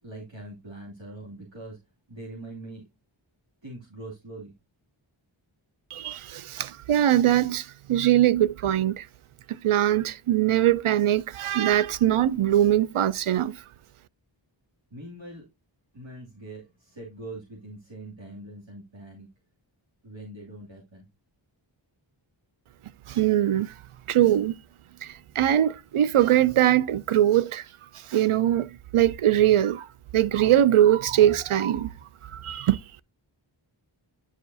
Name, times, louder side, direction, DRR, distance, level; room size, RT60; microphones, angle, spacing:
voice 1, 0.0-1.8 2.1-2.8 3.6-4.6 14.9-15.4 15.9-19.3 20.0-21.1, right 1 dB, 65° right, 2.6 m, -42 dB
voice 2, 5.9-9.0 9.6-13.6 23.1-23.7 24.1-24.5 25.4-27.6 28.1-29.8 30.1-31.9 32.3-32.8, right 12 dB, 85° right, 0.5 m, -21 dB
9.9 x 4.9 x 2.7 m
wide cardioid pair, 70°, 49 cm